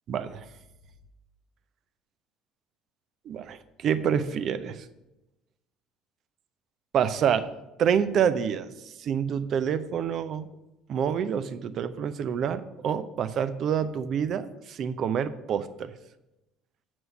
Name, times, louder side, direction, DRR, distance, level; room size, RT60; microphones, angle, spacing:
voice 1, 0.1-0.5 3.3-4.8 6.9-7.5 7.8-10.5 10.9-15.9, right 8 dB, 55° right, 12 dB, 0.6 m, -27 dB
7.9 x 6.1 x 5.9 m, 0.96 s
hypercardioid pair, 60°, 0 cm